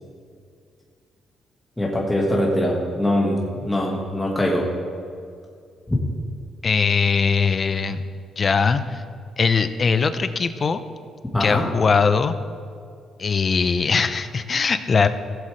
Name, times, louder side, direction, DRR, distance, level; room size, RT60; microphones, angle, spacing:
voice 1, 1.8-4.6 5.9-6.0 11.3-11.7, left 1 dB, 10° left, -3 dB, 1.7 m, -22 dB
voice 2, 6.6-8.0 8.4-9.0 9.4-10.8 11.4-12.3 13.2-15.1, left 5 dB, 40° left, 11 dB, 0.6 m, -20 dB
16.5 x 7.5 x 3.3 m, 2.3 s
cardioid pair, 90°, 0 cm